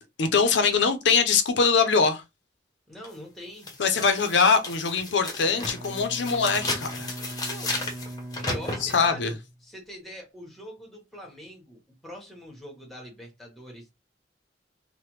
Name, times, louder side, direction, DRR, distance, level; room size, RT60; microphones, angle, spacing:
voice 1, 0.2-2.2 3.8-7.1 8.8-9.3, left 5 dB, 80° left, 0.5 m, -22 dB
voice 2, 2.9-4.4 7.4-7.8 8.4-13.9, equal, ahead, 1.0 m, -43 dB
sound 1, 3.0-3.1 3.6-9.1, left 2 dB, 20° left, 0.7 m, -34 dB
Bowed string instrument, 5.4-9.6, right 1 dB, 30° right, 1.3 m, -40 dB
3.2 x 2.1 x 3.0 m
head